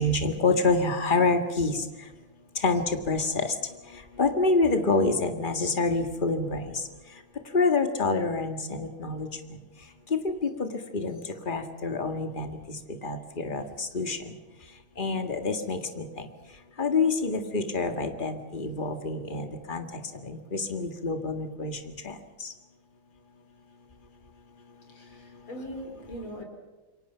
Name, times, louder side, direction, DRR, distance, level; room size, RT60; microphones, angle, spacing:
voice 1, 0.0-1.8 2.6-3.5 4.2-6.6 7.5-9.3 10.1-10.7 10.9-11.2 11.5-12.6 13.0-14.2 15.0-16.1 16.8-21.7 22.0-22.1, left 3 dB, 25° left, 6 dB, 1.9 m, -27 dB
voice 2, 24.9-26.4, equal, 75° left, 3 dB, 5.4 m, -40 dB
28.0 x 23.5 x 5.8 m, 1.2 s
omnidirectional pair, 2.2 m